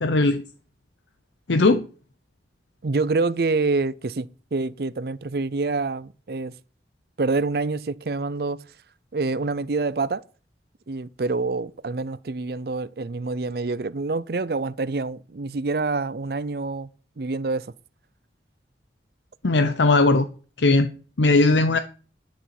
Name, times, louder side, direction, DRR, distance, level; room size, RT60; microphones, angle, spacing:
voice 1, 0.0-0.4 1.5-1.8 19.4-20.3 20.6-20.9 21.2-21.8, left 2 dB, 90° left, 0.8 m, -18 dB
voice 2, 2.8-6.5 7.2-8.6 9.1-10.2 10.9-16.9 17.2-17.7, right 3 dB, 60° right, 0.5 m, -26 dB
11.0 x 7.0 x 5.9 m
head